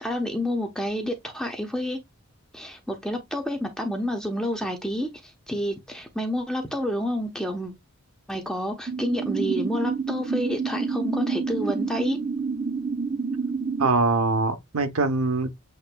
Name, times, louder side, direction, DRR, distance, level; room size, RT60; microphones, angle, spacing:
voice 1, 0.0-2.0 2.5-5.1 5.5-7.7 8.3-12.2, equal, 5° left, 0.9 m, -29 dB
sound 1, 8.9-13.9, right 4 dB, 30° right, 0.5 m, -28 dB
voice 2, 13.8-15.5, right 3 dB, 75° right, 0.8 m, -23 dB
7.7 x 2.9 x 2.2 m
head